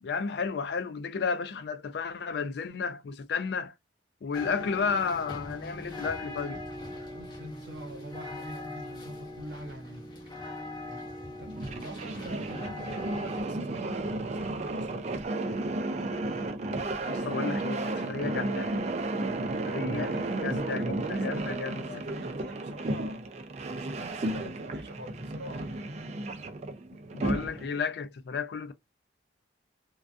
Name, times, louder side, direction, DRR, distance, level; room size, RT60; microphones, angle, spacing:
voice 1, 0.0-3.7 4.2-6.6 17.1-18.8 19.6-20.1 20.4-22.0 27.1-28.7, left 5 dB, 60° left, 0.3 m, -32 dB
sound 1, 4.3-13.4, left 2 dB, 25° left, 0.7 m, -41 dB
voice 2, 7.1-10.1 10.8-15.3 20.0-23.3 23.6-26.1, right 1 dB, 65° right, 0.8 m, -45 dB
sound 2, 11.4-27.8, right 2 dB, 35° right, 0.3 m, -33 dB
2.4 x 2.3 x 2.4 m
head